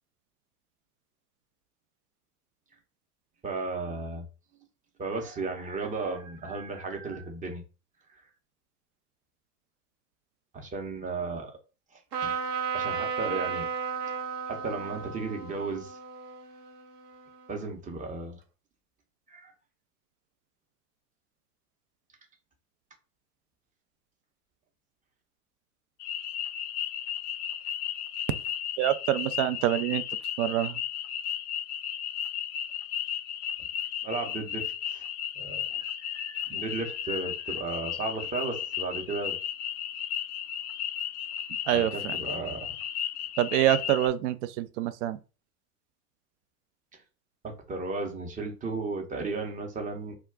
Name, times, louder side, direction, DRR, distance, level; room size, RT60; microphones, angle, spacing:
voice 1, 3.4-4.3 5.0-7.6 10.5-11.6 11.9-12.3 12.7-13.7 14.5-16.0 17.5-18.4 19.3-19.5 34.0-35.1 35.4-39.4 41.7-42.7 47.4-50.1, right 3 dB, 15° right, 0.7 m, -35 dB
Trumpet, 12.1-17.6, right 6 dB, 75° right, 0.8 m, -34 dB
sound 1, 26.0-44.1, left 9 dB, 75° left, 0.5 m, -34 dB
voice 2, 28.8-30.0 30.4-30.8 41.7-42.2 43.4-45.2, right 12 dB, 50° right, 0.4 m, -26 dB
2.3 x 2.2 x 3.6 m
hypercardioid pair, 95°, 47 cm